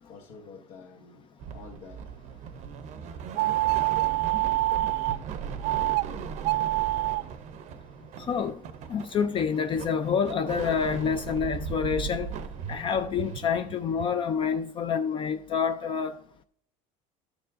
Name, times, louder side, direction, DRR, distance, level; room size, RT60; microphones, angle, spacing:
voice 1, 0.0-2.0 3.1-3.3 4.1-4.7 6.3-7.0 12.9-13.0, left 4 dB, 85° left, 1.6 m, -51 dB
sound 1, 1.4-14.1, right 7 dB, 50° right, 0.6 m, -38 dB
sound 2, 3.4-5.2 5.6-6.0 6.4-7.2, right 18 dB, 85° right, 0.4 m, -25 dB
voice 2, 8.3-8.6 8.9-12.3 12.7-16.2, left 6 dB, 35° left, 0.4 m, -27 dB
12.5 x 6.9 x 2.5 m
cardioid pair, 140°, 16 cm